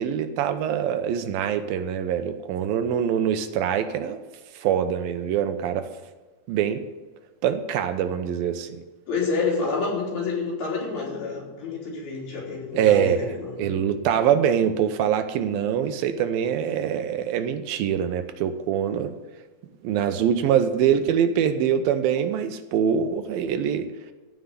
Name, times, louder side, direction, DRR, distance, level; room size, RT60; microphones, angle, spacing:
voice 1, 0.0-4.2 4.6-5.9 6.5-6.9 7.4-8.8 12.7-13.3 13.6-19.2 19.8-23.9, right 9 dB, 80° right, 9 dB, 2.7 m, -24 dB
voice 2, 9.1-13.8, left 4 dB, 90° left, -4 dB, 5.7 m, -28 dB
15.5 x 5.6 x 9.6 m, 1.2 s
omnidirectional pair, 4.2 m